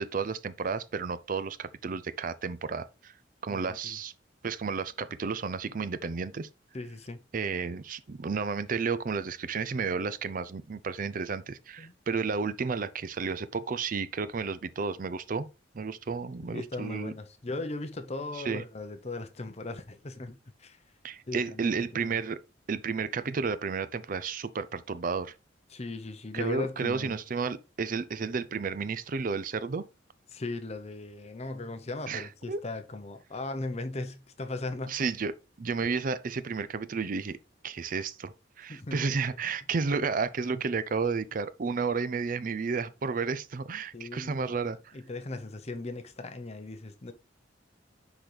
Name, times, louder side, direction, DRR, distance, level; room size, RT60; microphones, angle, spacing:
voice 1, 0.0-3.1 3.4-4.1 4.4-6.5 7.3-15.5 15.7-17.1 18.3-18.6 21.0-22.4 22.7-25.3 26.3-29.8 32.1-32.6 34.9-37.4 37.6-45.0, right 5 dB, 45° right, 0.5 m, -32 dB
voice 2, 3.5-4.0 6.7-7.2 11.8-11.9 16.5-20.8 21.3-22.2 25.7-27.2 30.3-35.0 38.7-39.0 43.9-44.5 44.9-47.1, left 2 dB, 35° left, 0.7 m, -38 dB
10.5 x 4.0 x 3.3 m
head